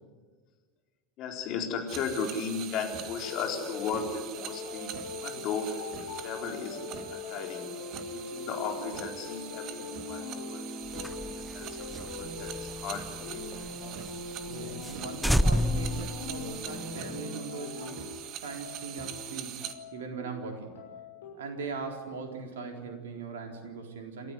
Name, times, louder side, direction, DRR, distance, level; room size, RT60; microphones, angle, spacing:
voice 1, 1.2-5.8 6.2-6.8 7.1-7.7 8.1-14.0 17.8-17.9, left 6 dB, 45° left, 2 dB, 4.2 m, -36 dB
sound 1, 1.9-19.7, right 9 dB, 45° right, 1.8 m, -43 dB
sound 2, 3.0-21.3, left 3 dB, 70° left, 6.2 m, -41 dB
sound 3, 10.9-13.7 14.1-14.2 14.5-14.6 14.8-15.0 15.2-16.9, equal, ahead, 0.6 m, -30 dB
voice 2, 14.5-18.0 18.4-19.7 19.9-20.8 21.3-24.3, right 4 dB, 65° right, 4 dB, 3.9 m, -40 dB
29.0 x 13.5 x 9.7 m, 1.4 s
figure-of-eight pair, 80°, 0 cm